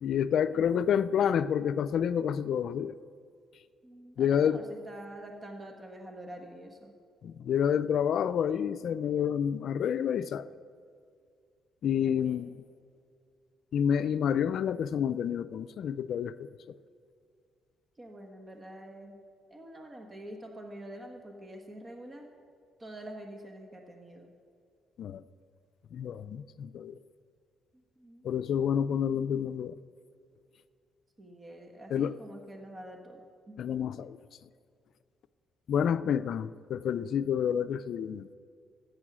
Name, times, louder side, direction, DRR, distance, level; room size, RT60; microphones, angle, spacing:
voice 1, 0.0-3.0 4.2-4.6 7.2-10.5 11.8-12.5 13.7-16.8 25.0-25.2 25.9-27.0 28.2-29.8 31.9-32.1 33.6-34.2 35.7-38.3, left 8 dB, 65° left, 15 dB, 0.4 m, -29 dB
voice 2, 3.8-6.9 12.0-12.4 18.0-19.1 19.5-22.3 22.8-24.3 27.7-28.2 31.2-33.2 33.5-33.6 34.0-34.1, right 1 dB, 30° right, 3 dB, 1.4 m, -46 dB
13.5 x 8.7 x 6.2 m, 2.2 s
cardioid pair, 90°, 0 cm